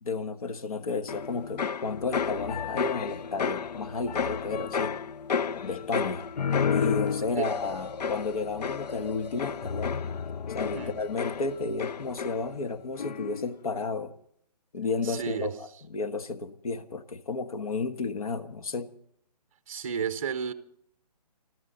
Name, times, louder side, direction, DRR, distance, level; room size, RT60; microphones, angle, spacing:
voice 1, 0.0-5.0 5.6-6.3 6.7-10.1 10.5-14.1 14.7-15.5 15.9-18.9, left 4 dB, 60° left, 1.4 m, -32 dB
sound 1, 1.1-12.7 13.0-13.5, left 6 dB, 75° left, 0.6 m, -32 dB
voice 2, 15.0-15.6 19.7-20.5, right 7 dB, 20° right, 0.7 m, -32 dB
26.0 x 13.5 x 4.1 m
hypercardioid pair, 170°, 21 cm